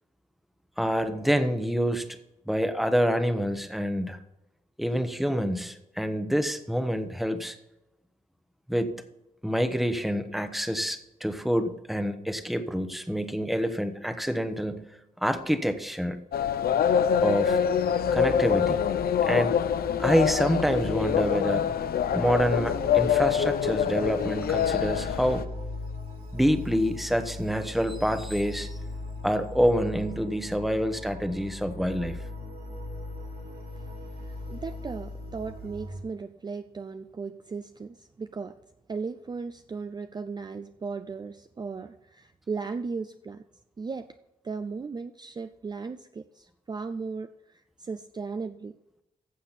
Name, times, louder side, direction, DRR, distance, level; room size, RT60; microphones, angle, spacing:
voice 1, 0.8-2.1 2.5-4.2 4.8-7.6 8.7-8.9 9.4-14.9 15.2-16.2 17.2-17.6 18.1-18.8 19.3-19.6 20.0-21.7 22.1-25.4 26.3-28.8 29.2-32.2, equal, ahead, 9 dB, 1.0 m, -27 dB
sound 1, 16.3-25.4, left 8 dB, 90° left, 0.7 m, -25 dB
sound 2, 18.0-36.0, left 1 dB, 75° right, 4.3 m, -39 dB
voice 2, 34.2-38.6 38.9-43.4 43.8-44.1 44.4-47.3 47.8-48.8, right 4 dB, 30° right, 9 dB, 0.4 m, -36 dB
14.5 x 7.5 x 4.2 m, 0.89 s
wide cardioid pair, 130°, 15 cm